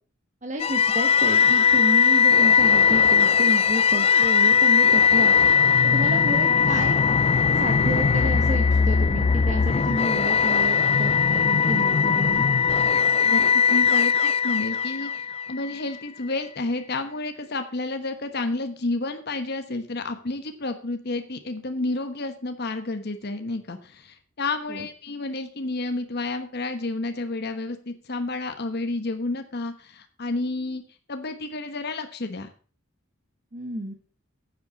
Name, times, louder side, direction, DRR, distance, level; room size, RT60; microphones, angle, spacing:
voice 1, 0.4-7.0 7.5-12.4 24.7-24.9 33.5-33.9, right 1 dB, 40° right, 3 dB, 1.3 m, -31 dB
sound 1, 0.6-15.7, left 6 dB, 30° left, 0.4 m, -19 dB
voice 2, 13.7-30.8 31.1-32.5, left 2 dB, 55° left, 7 dB, 1.2 m, -30 dB
9.6 x 8.0 x 5.9 m, 0.39 s
head